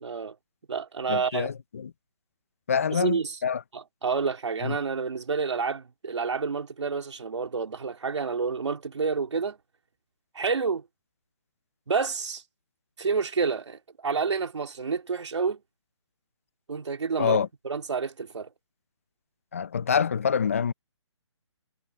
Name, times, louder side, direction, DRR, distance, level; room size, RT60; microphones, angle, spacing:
voice 1, 0.0-0.4 0.7-1.5 2.9-3.4 3.7-9.6 10.3-10.8 11.9-12.4 13.0-15.6 16.7-17.4 17.6-18.5, right 5 dB, 75° right, 3.2 m, -29 dB
voice 2, 1.1-1.9 2.7-3.6 4.6-4.8 17.2-17.5 19.5-20.7, left 7 dB, 30° left, 0.4 m, -26 dB
hypercardioid pair, 170°, 15 cm